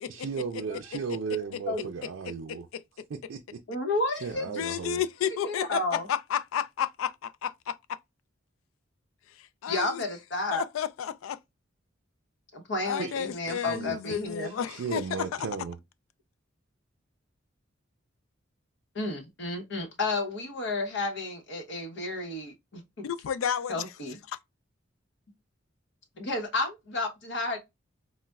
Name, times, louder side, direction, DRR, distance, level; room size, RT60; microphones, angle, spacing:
voice 1, 0.1-2.7 3.1-3.6 4.2-5.0 13.0-13.2 13.5-14.0 14.4-15.8, right 5 dB, 80° right, 0.4 m, -35 dB
voice 2, 2.5-2.8 4.5-8.0 9.4-10.0 10.5-11.4 12.8-15.0 15.3-15.5 23.0-23.8 24.3-24.4, left 9 dB, 85° left, 0.3 m, -32 dB
voice 3, 3.7-4.8 5.4-6.1 9.7-10.6 12.5-14.6 18.9-23.1 23.7-24.2 26.2-27.6, left 2 dB, 60° left, 0.9 m, -32 dB
4.0 x 2.1 x 2.2 m
head